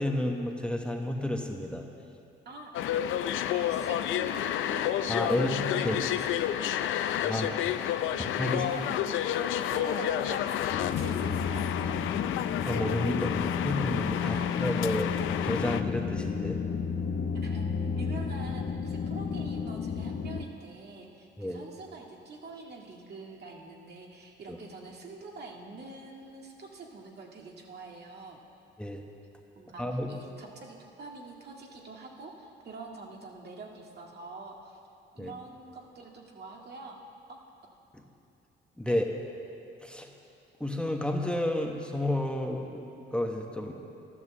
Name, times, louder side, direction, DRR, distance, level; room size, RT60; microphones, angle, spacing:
voice 1, 0.0-1.8 5.1-6.0 7.3-7.7 8.2-8.6 12.7-15.2 15.4-16.6 21.4-21.6 24.5-24.6 28.8-29.0 29.8-30.1 35.2-35.3 37.9-38.0 38.8-39.1 39.8-40.1 40.6-43.7, left 1 dB, 5° left, 2 dB, 1.2 m, -31 dB
voice 2, 2.5-3.0 3.5-7.5 8.1-12.0 14.2-14.9 17.3-28.4 29.6-34.8 35.1-37.0 37.3-37.4 38.9-39.0, right 3 dB, 55° right, 0 dB, 2.0 m, -46 dB
sound 1, 2.7-15.8, left 11 dB, 85° left, 0.5 m, -30 dB
sound 2, 10.7-20.4, left 6 dB, 55° left, 0.8 m, -32 dB
12.0 x 11.5 x 7.5 m, 2.6 s
cardioid pair, 90°, 20 cm